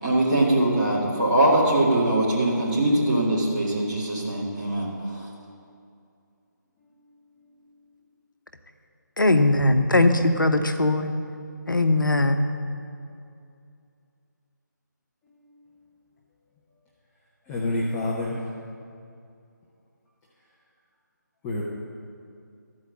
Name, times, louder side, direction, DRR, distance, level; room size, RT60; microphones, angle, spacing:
voice 1, 0.0-5.3, right 1 dB, 20° right, -7 dB, 1.9 m, -22 dB
voice 2, 9.2-11.1 11.7-12.4, left 2 dB, 80° left, 7 dB, 0.8 m, -20 dB
voice 3, 17.5-18.5 21.4-21.6, left 1 dB, 5° left, -5 dB, 0.3 m, -27 dB
14.0 x 4.8 x 7.2 m, 2.5 s
figure-of-eight pair, 155°, 11 cm